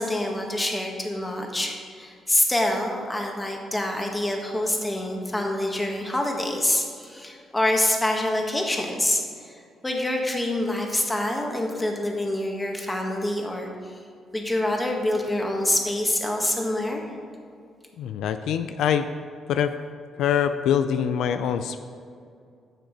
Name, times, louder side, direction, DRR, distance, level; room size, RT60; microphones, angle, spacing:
voice 1, 0.0-14.0 14.3-17.1, left 1 dB, 15° left, 1 dB, 1.6 m, -26 dB
voice 2, 18.0-19.1 19.5-19.7 20.2-21.8, left 8 dB, 80° left, 9 dB, 0.4 m, -24 dB
10.0 x 6.6 x 5.2 m, 2.4 s
cardioid pair, 90°, 0 cm